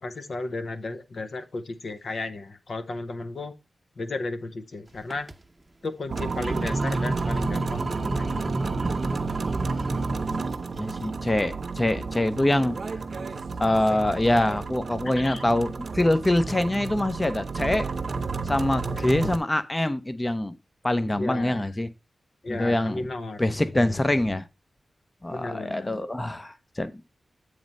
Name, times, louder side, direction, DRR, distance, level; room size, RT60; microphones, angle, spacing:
voice 1, 0.0-3.5 4.0-5.3 5.8-8.6 15.2-15.4 18.8-19.2 21.2-21.7 22.4-23.4 23.7-24.0 25.3-26.0, left 2 dB, 65° left, 0.7 m, -34 dB
sound 1, 4.9-5.3 6.1-11.1, right 2 dB, 25° right, 0.7 m, -31 dB
sound 2, 6.1-19.4, right 4 dB, 60° right, 0.7 m, -31 dB
voice 2, 10.8-12.8 13.6-17.9 18.4-20.5 20.8-21.9 22.5-23.1 23.4-24.4 25.2-27.0, left 1 dB, 20° left, 0.6 m, -25 dB
8.7 x 3.2 x 5.2 m
cardioid pair, 60°, 0 cm